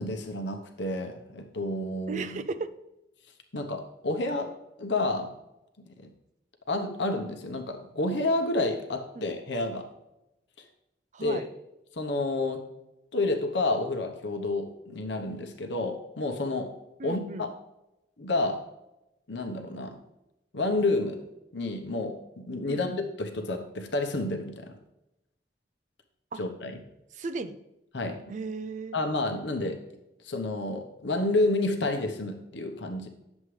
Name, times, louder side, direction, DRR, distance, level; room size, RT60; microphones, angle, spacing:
voice 1, 0.0-2.4 3.5-4.5 4.8-5.3 5.9-6.1 6.7-9.9 11.2-11.4 11.9-12.6 13.1-16.7 17.0-17.5 18.2-18.6 19.3-20.0 20.5-21.2 21.5-24.8 26.4-26.8 27.9-28.2 28.9-29.8 30.2-33.1, left 2 dB, 80° left, 5 dB, 0.9 m, -30 dB
voice 2, 2.1-2.7 11.1-11.5 17.0-17.5 22.7-22.9 26.3-26.4 27.1-27.6 28.3-29.0, right 3 dB, 40° right, 12 dB, 0.4 m, -35 dB
9.5 x 7.2 x 3.2 m, 0.90 s
head